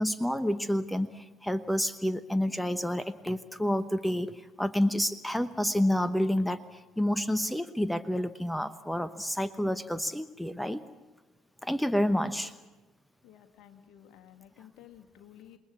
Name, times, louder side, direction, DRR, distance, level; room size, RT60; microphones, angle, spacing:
voice 1, 0.0-10.8 11.6-12.5, equal, 5° left, 14 dB, 1.0 m, -29 dB
voice 2, 12.1-12.5 13.2-15.6, left 11 dB, 55° left, 6 dB, 2.0 m, -54 dB
28.0 x 20.5 x 8.5 m, 1.1 s
figure-of-eight pair, 50°, 0 cm